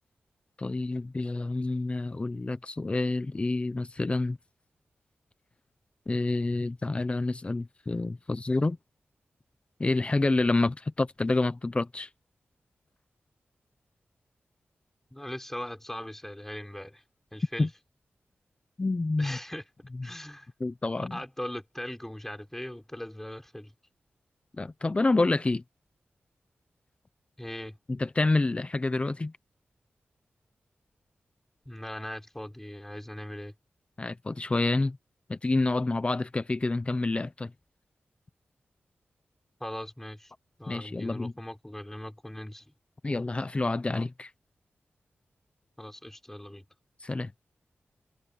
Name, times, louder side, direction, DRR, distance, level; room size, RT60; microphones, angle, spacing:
voice 1, 0.6-4.4 6.1-8.8 9.8-12.1 17.6-17.7 18.8-19.4 20.0-20.1 20.6-21.2 24.6-25.6 27.9-29.3 34.0-35.0 35.3-37.5 40.7-41.3 43.0-44.3 47.0-47.3, left 2 dB, 30° left, 0.9 m, -28 dB
voice 2, 15.1-17.0 17.3-17.7 19.2-19.6 20.0-20.5 21.1-23.7 27.4-27.8 31.7-33.5 39.6-40.3 40.6-42.7 45.8-46.6, left 1 dB, 10° left, 5.9 m, -39 dB
wide cardioid pair, 100°, 4 cm